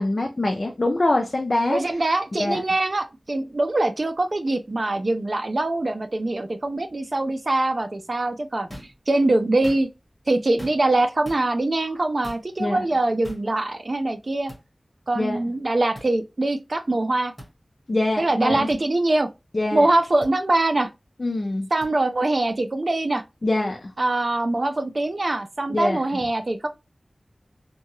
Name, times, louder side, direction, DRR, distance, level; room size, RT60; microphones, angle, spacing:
voice 1, 0.0-1.8 2.3-2.6 12.6-12.8 15.1-15.4 17.9-18.7 19.5-19.9 21.2-21.7 23.4-23.9 25.7-26.2, left 2 dB, 50° left, 0.4 m, -24 dB
voice 2, 1.7-8.7 9.1-9.9 10.3-14.5 15.1-17.3 18.2-19.3 19.7-20.9 21.7-23.2 24.0-26.7, right 2 dB, 50° right, 0.4 m, -23 dB
sound 1, 8.7-9.0 9.5-10.1 10.6-11.0 11.2-11.4 12.2-12.5 13.2-13.5 14.5-14.6 15.9-16.1 17.4-17.5 18.7-18.8 20.2-20.3 21.8-21.9, equal, 15° left, 1.3 m, -41 dB
2.8 x 2.2 x 3.0 m
wide cardioid pair, 75°, 0 cm